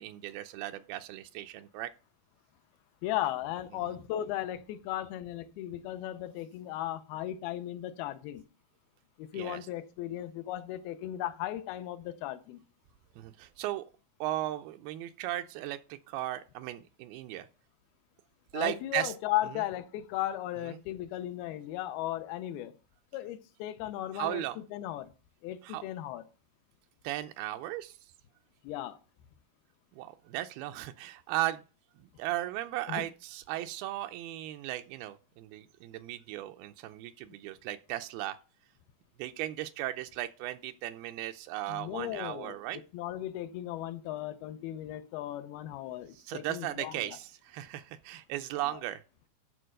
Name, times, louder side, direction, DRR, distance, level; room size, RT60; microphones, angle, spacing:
voice 1, 0.0-1.9 3.8-3.9 9.3-9.7 13.2-13.9 14.2-17.5 18.5-19.1 20.6-20.8 24.1-24.6 25.6-25.8 27.0-28.0 29.9-31.6 32.2-38.4 39.2-42.8 46.1-49.0, right 15 dB, 85° right, 2.5 m, -36 dB
voice 2, 3.0-8.4 9.2-12.6 18.5-22.7 23.1-25.1 25.4-26.2 28.6-29.0 32.9-33.0 41.7-42.6 42.9-47.2 48.6-48.8, left 13 dB, 85° left, 2.6 m, -36 dB
11.5 x 4.4 x 6.3 m
omnidirectional pair, 4.3 m